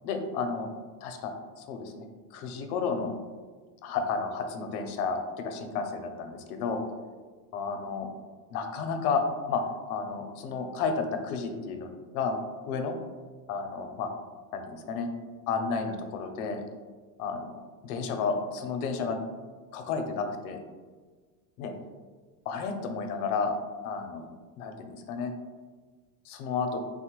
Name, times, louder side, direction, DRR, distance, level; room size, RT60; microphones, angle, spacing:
voice 1, 0.0-0.7 1.0-3.1 3.8-6.9 7.5-8.1 8.5-9.2 9.5-9.6 9.9-11.9 12.1-12.4 12.7-12.9 13.5-14.1 14.5-15.1 15.5-16.6 17.2-17.5 17.8-19.2 19.7-20.6 21.6-21.7 22.5-23.5 23.8-24.3 24.6-25.3 26.3-26.8, left 5 dB, 70° left, 5 dB, 0.6 m, -32 dB
3.4 x 2.1 x 2.9 m, 1.5 s
supercardioid pair, 155°, 46 cm